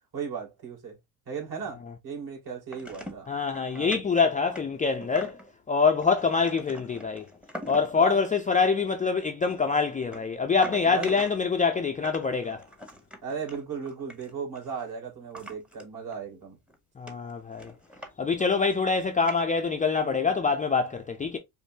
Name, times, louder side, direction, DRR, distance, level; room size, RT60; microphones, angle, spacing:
voice 1, 0.1-1.0 1.3-3.3 3.7-4.0 8.0-8.2 10.8-11.2 13.2-16.6, right 6 dB, 50° right, 2.5 m, -36 dB
sound 1, 2.7-3.3 3.5-4.0 4.4-5.5 6.0-8.0 8.4-8.7 9.5-11.6 12.0-14.8 15.3-15.8 16.1-16.2 16.7-16.8 17.1-18.1 18.4-18.9 19.2-19.8, equal, ahead, 0.9 m, -43 dB
voice 2, 3.3-5.4 5.7-7.3 7.7-12.6 17.0-17.7 18.2-21.4, left 5 dB, 20° left, 0.4 m, -25 dB
5.2 x 2.1 x 2.7 m
supercardioid pair, 80°, 47 cm